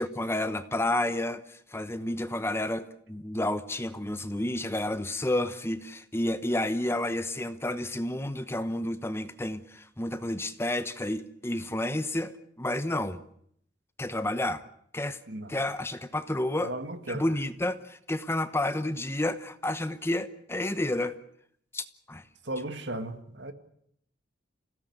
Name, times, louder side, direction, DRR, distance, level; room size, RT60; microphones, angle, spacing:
voice 1, 0.0-13.2 14.0-14.6 14.9-15.2 15.5-16.7 17.1-21.2 21.7-22.2, left 1 dB, 15° left, 1.0 m, -30 dB
voice 2, 16.6-17.2 22.5-23.5, right 2 dB, 70° right, 2.1 m, -35 dB
27.5 x 17.0 x 8.0 m
head